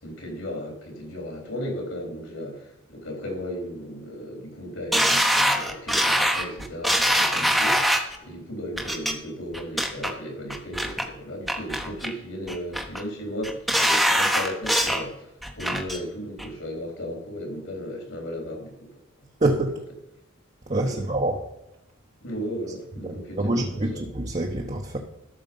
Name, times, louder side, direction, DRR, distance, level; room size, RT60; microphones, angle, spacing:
voice 1, 0.0-19.0 20.8-21.0 22.2-24.1, equal, 70° left, 2 dB, 3.9 m, -35 dB
sound 1, 4.9-8.2 8.8-9.1 9.5-10.1 10.5-11.0 11.5-12.1 12.5-13.0 13.4-15.0 15.4-16.0 16.4-16.5, equal, ahead, 0.9 m, -23 dB
voice 2, 19.4-19.7 20.7-21.4 23.0-25.0, right 2 dB, 30° right, 1 dB, 1.0 m, -26 dB
13.0 x 6.7 x 5.4 m, 0.90 s
head